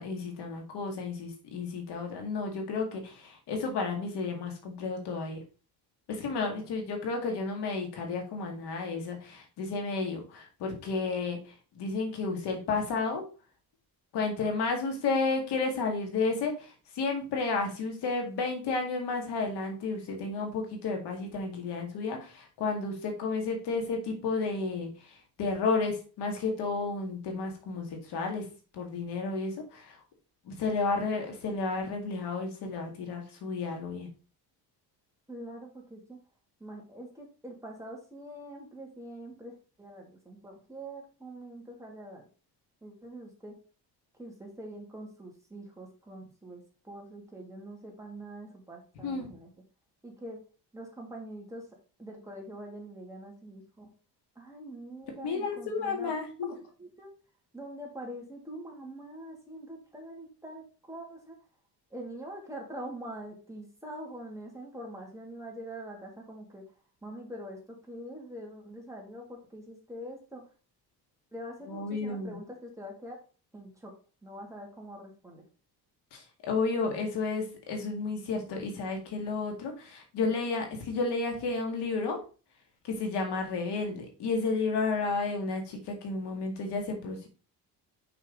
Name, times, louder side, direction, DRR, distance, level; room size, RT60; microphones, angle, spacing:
voice 1, 0.0-5.4 6.1-13.2 14.1-28.5 28.7-30.0 30.4-34.1 49.0-49.3 55.2-56.5 71.7-72.4 76.1-82.2 82.8-87.3, left 4 dB, 90° left, 3 dB, 2.2 m, -32 dB
voice 2, 6.3-6.7 35.3-36.2 36.6-42.3 42.8-43.6 44.2-49.5 50.0-50.4 50.7-51.7 52.0-53.9 54.4-56.1 56.8-57.1 57.5-61.4 61.9-66.6 67.0-70.4 71.3-73.2 73.5-73.9 74.2-75.4, right 1 dB, 10° right, -1 dB, 2.4 m, -44 dB
5.8 x 5.6 x 3.9 m, 0.36 s
cardioid pair, 130°, 39 cm